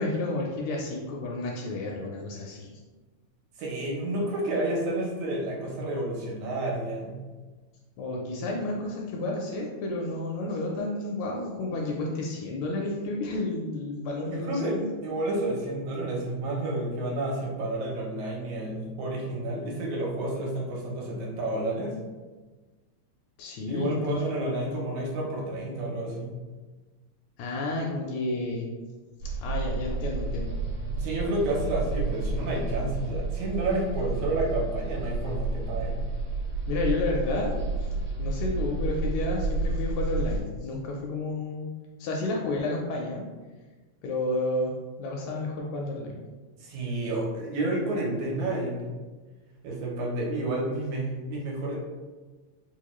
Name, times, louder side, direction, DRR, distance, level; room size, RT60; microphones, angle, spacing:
voice 1, 0.0-2.7 8.0-14.9 23.4-24.2 27.4-28.7 29.4-30.6 36.7-37.6 38.2-41.7 42.0-43.3 44.0-44.7 45.0-46.1, left 2 dB, 80° left, -1 dB, 1.6 m, -31 dB
voice 2, 3.6-7.2 14.3-14.8 15.0-22.0 23.7-26.4 31.0-36.0 46.6-48.9 49.6-51.8, right 1 dB, 75° right, -2 dB, 2.1 m, -30 dB
sound 1, 29.2-40.4, right 3 dB, 60° right, 1.2 m, -30 dB
4.6 x 2.2 x 3.0 m, 1.3 s
omnidirectional pair, 3.4 m